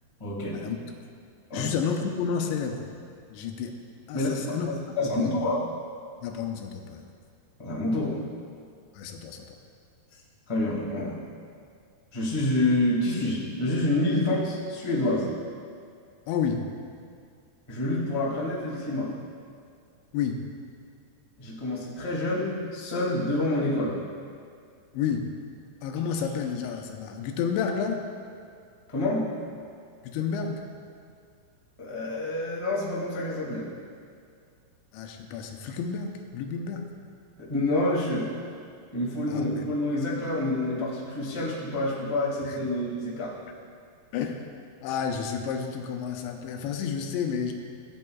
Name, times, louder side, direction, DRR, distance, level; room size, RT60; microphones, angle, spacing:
voice 1, 0.2-0.6 1.5-1.7 4.1-5.6 7.6-8.2 10.5-11.1 12.1-15.3 17.7-19.1 21.4-24.0 28.9-29.3 31.8-33.7 37.4-38.3 38.9-43.3, left 1 dB, 25° left, -7 dB, 0.6 m, -27 dB
voice 2, 1.5-2.9 3.3-3.8 4.1-4.7 5.0-5.4 6.2-7.0 8.9-9.5 16.3-16.7 20.1-20.4 24.9-25.3 25.8-28.0 30.0-30.6 34.9-36.9 39.3-39.6 42.4-42.6 44.1-44.5 44.8-47.5, left 6 dB, 85° left, 3 dB, 3.0 m, -30 dB
17.0 x 8.7 x 2.4 m, 2.2 s
omnidirectional pair, 5.0 m